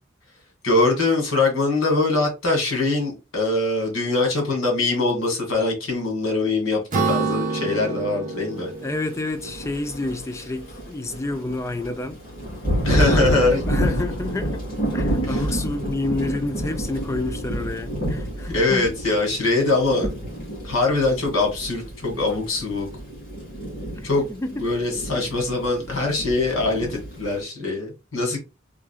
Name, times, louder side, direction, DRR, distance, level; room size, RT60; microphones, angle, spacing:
voice 1, 0.6-8.7 12.8-13.6 15.2-15.5 18.5-20.1 20.6-22.9 24.0-24.3 24.6-28.4, left 2 dB, 90° left, 1.9 m, -22 dB
Acoustic guitar / Strum, 6.9-10.5, right 4 dB, 40° right, 0.8 m, -28 dB
voice 2, 8.8-12.2 13.1-14.6 14.9-18.9 24.0-24.5, left 2 dB, 15° left, 0.3 m, -29 dB
Thunder / Rain, 9.3-27.4, right 1 dB, 45° left, 2.4 m, -29 dB
3.8 x 3.6 x 2.4 m
head